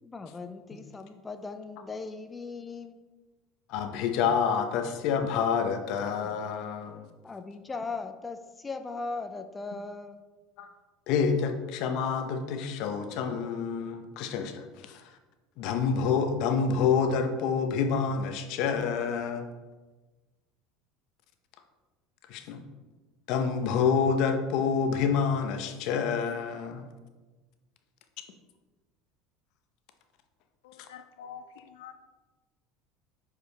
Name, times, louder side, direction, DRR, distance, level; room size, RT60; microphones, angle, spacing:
voice 1, 0.0-3.0 7.2-10.2, left 3 dB, 20° left, 8 dB, 0.5 m, -38 dB
voice 2, 3.7-7.0 10.6-10.7 11.1-15.2 15.6-19.5 22.3-22.6 23.3-26.9, left 6 dB, 65° left, 7 dB, 0.8 m, -28 dB
voice 3, 30.6-31.9, left 8 dB, 85° left, 8 dB, 0.3 m, -46 dB
6.9 x 4.9 x 3.3 m, 1.2 s
supercardioid pair, 100°, 0 cm